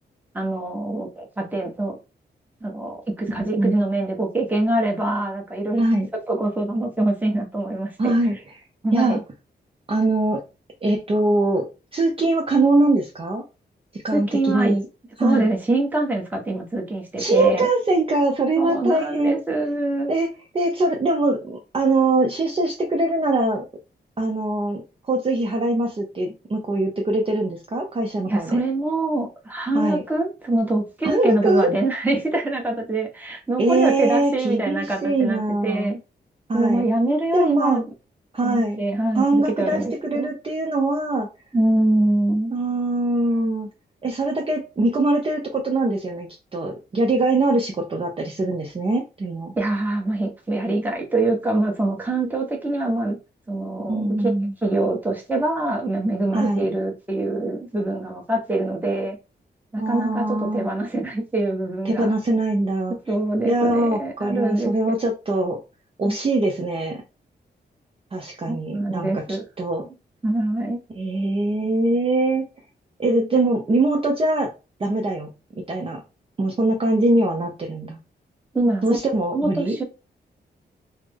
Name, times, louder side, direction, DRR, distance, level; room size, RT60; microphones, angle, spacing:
voice 1, 0.3-2.0 2.6-5.8 6.3-8.1 8.8-9.2 14.1-14.7 15.2-17.7 18.6-20.1 28.3-36.0 36.5-37.8 38.4-40.3 41.5-42.5 49.5-53.2 53.5-54.3 54.6-59.2 59.7-62.1 63.1-64.7 66.0-66.1 68.5-69.4 69.8-69.9 70.2-70.8 78.5-79.0 79.3-79.8, right 2 dB, 10° right, 0.9 m, -24 dB
voice 2, 8.0-8.4 8.9-9.2 9.9-10.4 10.8-11.7 11.9-13.4 13.9-14.8 15.2-15.5 17.2-19.4 20.1-20.3 20.5-23.6 24.2-28.6 29.7-30.0 31.0-31.7 33.6-36.0 36.5-36.8 37.3-37.8 38.3-38.8 39.2-41.3 42.5-43.7 44.0-49.5 53.9-54.5 56.3-56.7 59.8-60.7 61.8-62.9 63.4-65.6 66.0-67.0 68.1-69.8 71.0-72.5 73.0-74.5 74.8-75.3 75.7-76.0 76.4-78.0 78.8-79.8, right 2 dB, 30° right, 0.6 m, -22 dB
3.2 x 2.0 x 3.5 m
wide cardioid pair, 105°, 18 cm